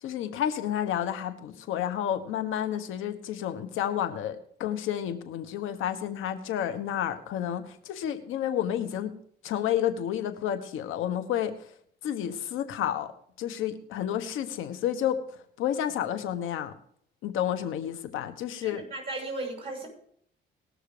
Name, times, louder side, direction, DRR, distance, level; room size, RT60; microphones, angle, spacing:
voice 1, 0.0-9.1 9.4-11.5 12.0-13.1 13.4-15.2 15.6-16.7 17.2-18.8, left 10 dB, 90° left, 10 dB, 1.3 m, -30 dB
voice 2, 18.6-19.9, right 2 dB, 30° right, 1 dB, 6.1 m, -35 dB
19.5 x 6.6 x 4.9 m, 0.64 s
cardioid pair, 90°, 20 cm